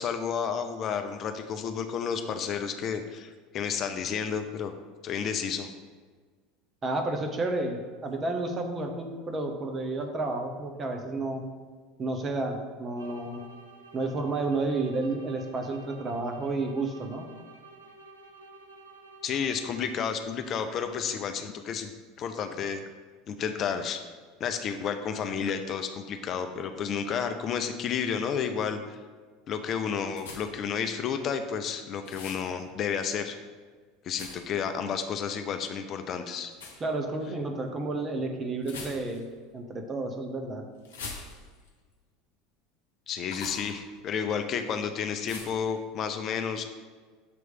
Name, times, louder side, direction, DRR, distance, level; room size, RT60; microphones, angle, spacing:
voice 1, 0.0-4.7 5.0-5.7 19.2-21.9 22.2-22.8 23.3-24.0 24.4-29.0 29.5-33.4 34.0-36.5 43.1-46.7, left 7 dB, 40° left, 7 dB, 0.4 m, -31 dB
voice 2, 6.8-11.4 12.0-13.4 13.9-17.3 36.8-39.2 39.5-40.6, right 2 dB, 30° right, 4 dB, 0.9 m, -31 dB
sound 1, 12.9-20.5, right 2 dB, 85° right, 0.6 m, -51 dB
sound 2, 30.2-30.7 32.0-32.5 34.1-34.6 36.5-36.8 38.6-39.3 40.8-41.7 43.3-43.7 45.3-45.7, left 4 dB, 75° left, 0.9 m, -42 dB
6.8 x 3.1 x 5.1 m, 1.5 s
figure-of-eight pair, 75°, 0 cm